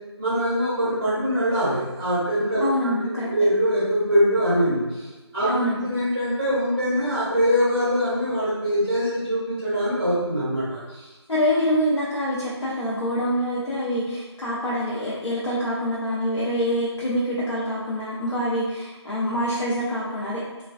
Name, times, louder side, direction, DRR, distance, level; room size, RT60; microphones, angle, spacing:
voice 1, 0.2-2.9 3.3-5.5 5.8-11.1, equal, 30° right, -10 dB, 0.6 m, -23 dB
voice 2, 2.6-3.3 5.4-5.9 11.3-20.4, equal, 75° left, -7 dB, 0.6 m, -25 dB
2.4 x 2.2 x 2.4 m, 1.2 s
figure-of-eight pair, 180°, 15 cm